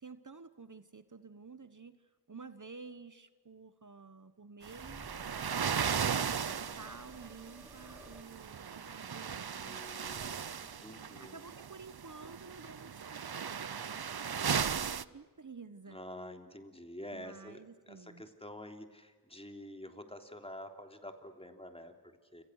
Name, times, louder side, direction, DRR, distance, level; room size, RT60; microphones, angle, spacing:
voice 1, 0.0-5.2 5.6-10.2 11.2-16.0 17.1-18.2, right 4 dB, 50° right, 12 dB, 1.2 m, -51 dB
sound 1, 4.6-15.0, right 7 dB, 65° right, 0.8 m, -37 dB
sound 2, 4.7-8.2, equal, 5° right, 1.6 m, -55 dB
voice 2, 9.6-11.6 15.9-22.4, left 1 dB, 15° left, 5 dB, 3.3 m, -48 dB
29.0 x 27.0 x 6.5 m, 1.4 s
wide cardioid pair, 65°, 40 cm